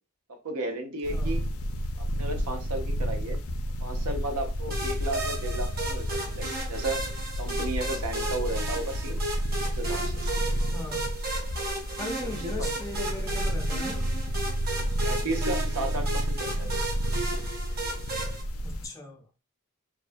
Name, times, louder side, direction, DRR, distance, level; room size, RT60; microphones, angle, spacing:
voice 1, 0.3-1.4 2.1-3.4 3.8-7.0 7.4-9.2 9.7-10.3 12.2-12.5 15.0-16.9, right 2 dB, 90° right, 0.6 m, -34 dB
sound 1, 1.0-18.9, equal, 70° left, 0.4 m, -31 dB
voice 2, 1.1-1.5 10.7-11.1 12.0-14.1 18.6-19.2, left 1 dB, 15° left, 0.5 m, -39 dB
sound 2, 4.7-18.4, right 2 dB, 45° right, 0.7 m, -35 dB
2.4 x 2.1 x 2.5 m
head